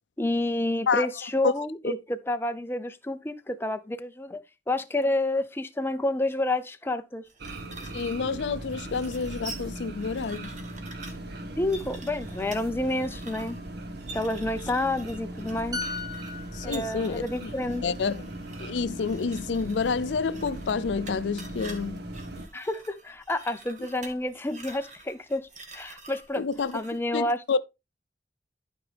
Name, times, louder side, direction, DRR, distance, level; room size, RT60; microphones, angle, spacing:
voice 1, 0.2-7.2 11.6-13.6 14.1-15.8 16.6-17.8 22.5-25.5 25.7-26.4 26.7-27.6, left 1 dB, 15° left, 0.5 m, -29 dB
sound 1, 7.3-27.0, right 3 dB, 45° right, 1.7 m, -47 dB
sound 2, 7.4-22.5, right 1 dB, 65° right, 1.0 m, -39 dB
voice 2, 7.9-10.5 16.5-17.5 17.8-18.2 18.6-22.0 26.4-26.7 27.1-27.6, left 5 dB, 75° left, 0.5 m, -28 dB
sound 3, 15.7-19.3 19.6-19.9, left 3 dB, 20° right, 0.8 m, -40 dB
12.0 x 4.8 x 3.3 m
head